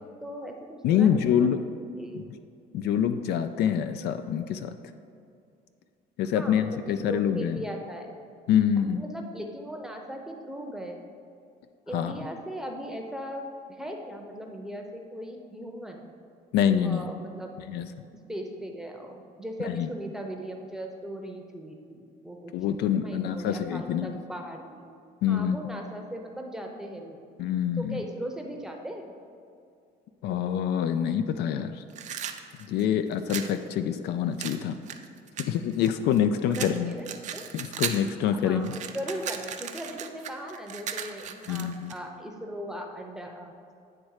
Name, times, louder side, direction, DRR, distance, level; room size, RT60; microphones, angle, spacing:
voice 1, 0.2-1.5 2.0-2.2 6.3-8.1 8.9-11.0 11.9-16.1 16.8-17.5 18.1-24.9 25.3-27.2 27.8-29.1 36.4-37.5 38.3-43.5, equal, 5° right, 2 dB, 0.7 m, -38 dB
voice 2, 0.8-1.6 2.1-2.2 2.7-4.7 6.2-7.6 8.5-9.0 11.9-12.1 16.5-17.0 17.7-17.9 19.6-19.9 22.5-24.1 25.2-25.7 27.4-28.0 30.2-31.8 32.7-34.8 35.4-36.9 37.5-38.7 41.5-41.9, left 9 dB, 75° left, 9 dB, 0.4 m, -26 dB
sound 1, 31.9-33.6 34.4-36.2 36.5-38.1 38.4-42.0, right 8 dB, 45° right, 0.5 m, -36 dB
8.8 x 3.1 x 4.8 m, 2.5 s
cardioid pair, 110°, 17 cm